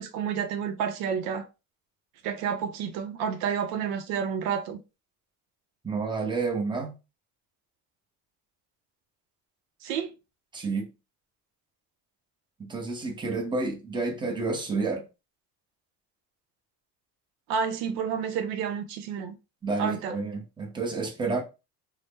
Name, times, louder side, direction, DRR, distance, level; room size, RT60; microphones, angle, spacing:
voice 1, 0.0-1.4 2.2-4.8 9.8-10.1 17.5-19.3 19.8-20.2, right 7 dB, 80° right, 0.7 m, -30 dB
voice 2, 5.8-7.0 10.5-10.9 12.6-15.1 19.6-21.4, right 3 dB, 10° right, 0.7 m, -30 dB
2.7 x 2.1 x 3.5 m
supercardioid pair, 105°, 42 cm